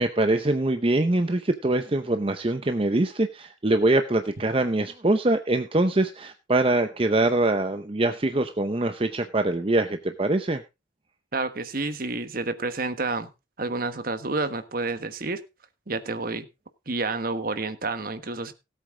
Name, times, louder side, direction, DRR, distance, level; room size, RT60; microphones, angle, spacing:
voice 1, 0.0-10.6, right 2 dB, 30° right, 0.6 m, -23 dB
voice 2, 11.3-13.3 13.6-15.4 15.9-16.5 16.9-18.5, right 3 dB, 45° right, 1.3 m, -29 dB
17.0 x 8.2 x 3.7 m
head